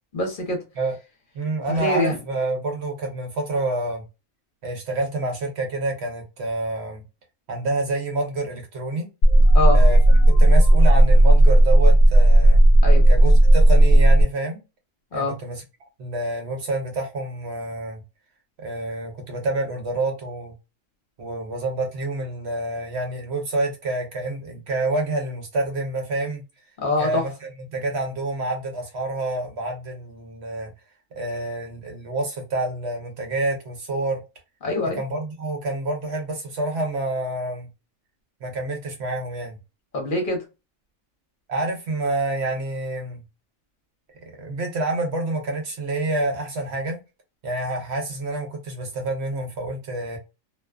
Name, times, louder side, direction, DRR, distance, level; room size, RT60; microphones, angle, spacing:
voice 1, 0.1-0.6 1.7-2.2 9.5-9.8 12.8-13.1 15.1-15.4 26.8-27.2 34.6-35.0 39.9-40.4, left 2 dB, 45° left, 1.0 m, -24 dB
voice 2, 1.3-4.0 4.6-7.0 7.5-9.1 9.7-10.0 10.4-12.6 13.1-14.6 15.1-15.6 16.0-18.0 18.6-20.5 21.2-26.4 27.0-30.7 31.2-34.2 34.9-37.7 38.4-39.6 41.5-43.2 44.2-47.0 47.4-50.2, right 2 dB, 60° right, 0.9 m, -28 dB
sound 1, 9.2-14.2, right 1 dB, 60° left, 0.6 m, -13 dB
2.5 x 2.2 x 2.2 m
omnidirectional pair, 1.4 m